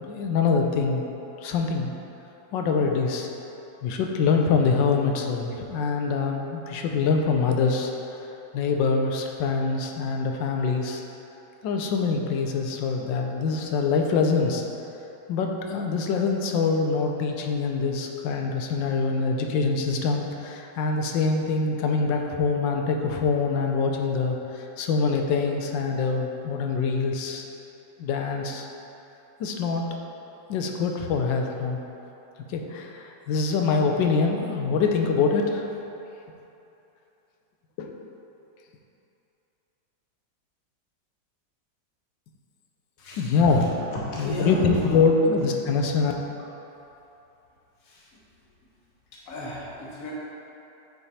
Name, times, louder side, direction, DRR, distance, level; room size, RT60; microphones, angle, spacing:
voice 1, 0.0-1.0 1.4-1.9 2.5-3.3 3.8-7.9 8.5-11.0 11.6-14.6 15.3-27.4 28.0-28.7 29.4-29.9 30.5-31.8 32.5-35.6 37.8-37.9 43.2-43.7 44.2-46.1, left 4 dB, 85° left, 2 dB, 1.3 m, -24 dB
voice 2, 43.0-43.3 44.1-45.3 47.9-48.1 49.1-50.1, left 1 dB, 55° left, -5 dB, 1.4 m, -34 dB
8.6 x 3.4 x 4.1 m, 2.9 s
omnidirectional pair, 1.9 m